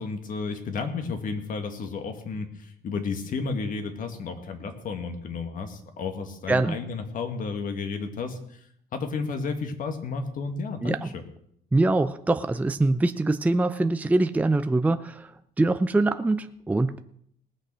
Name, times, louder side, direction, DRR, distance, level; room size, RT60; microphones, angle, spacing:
voice 1, 0.0-8.7 8.9-11.1, left 4 dB, 55° left, 7 dB, 2.0 m, -32 dB
voice 2, 10.8-11.1 11.7-17.0, right 2 dB, 10° right, 10 dB, 0.5 m, -24 dB
19.0 x 6.5 x 6.3 m, 0.70 s
cardioid pair, 110°, 17 cm